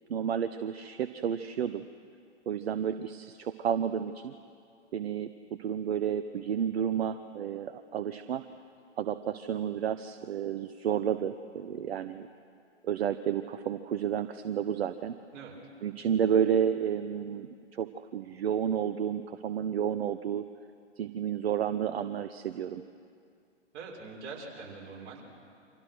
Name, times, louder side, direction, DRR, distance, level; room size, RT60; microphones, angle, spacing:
voice 1, 0.1-1.8 2.5-4.3 4.9-5.3 5.6-8.4 9.0-12.3 12.8-15.1 15.8-20.4 21.0-22.8, right 8 dB, 55° right, 10 dB, 1.0 m, -31 dB
voice 2, 23.7-25.2, right 4 dB, 30° right, -2 dB, 6.4 m, -43 dB
29.0 x 25.5 x 6.3 m, 2.3 s
figure-of-eight pair, 120°, 36 cm